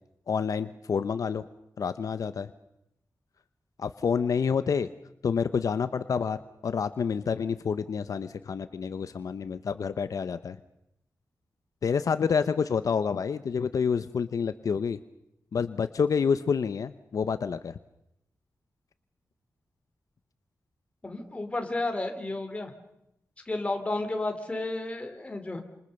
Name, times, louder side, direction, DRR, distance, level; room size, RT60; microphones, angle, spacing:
voice 1, 0.3-1.5 1.8-2.5 3.8-4.9 5.2-6.4 6.6-10.6 11.8-15.0 15.5-17.7, left 6 dB, 70° left, 11 dB, 0.9 m, -28 dB
voice 2, 21.0-22.7 23.4-25.6, left 2 dB, 20° left, 5 dB, 3.2 m, -32 dB
29.0 x 27.5 x 6.7 m, 0.82 s
wide cardioid pair, 160°, 6 cm